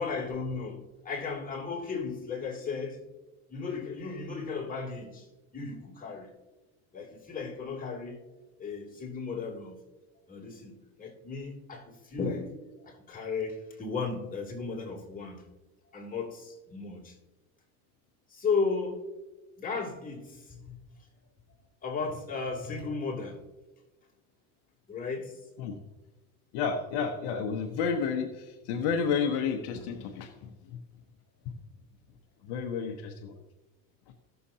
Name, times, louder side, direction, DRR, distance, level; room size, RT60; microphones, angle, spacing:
voice 1, 0.0-3.0 3.5-5.2 5.5-6.3 6.9-8.2 8.6-9.8 10.3-15.4 15.9-17.1 18.3-19.0 19.6-20.8 21.8-23.4 24.9-25.3, left 4 dB, 20° left, 3.0 m, -35 dB
voice 2, 26.5-30.8 32.4-33.3, left 6 dB, 65° left, 1.2 m, -31 dB
17.0 x 6.9 x 2.9 m
supercardioid pair, 100°, 43 cm